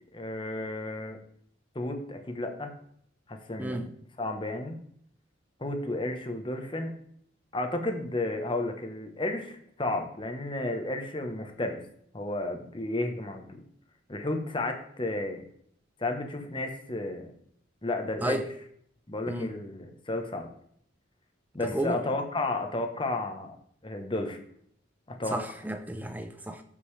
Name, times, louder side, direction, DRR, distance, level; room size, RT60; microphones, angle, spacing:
voice 1, 0.1-1.2 1.7-2.7 3.3-3.8 4.2-4.8 5.6-6.9 7.5-11.8 12.1-13.6 14.1-15.4 16.0-17.3 17.8-18.4 19.1-20.5 21.5-23.5 23.8-24.4 25.1-25.4, left 2 dB, 25° left, 5 dB, 1.1 m, -32 dB
voice 2, 21.6-22.0 25.3-26.6, right 1 dB, 10° right, 7 dB, 0.7 m, -32 dB
14.0 x 5.3 x 3.3 m, 0.65 s
head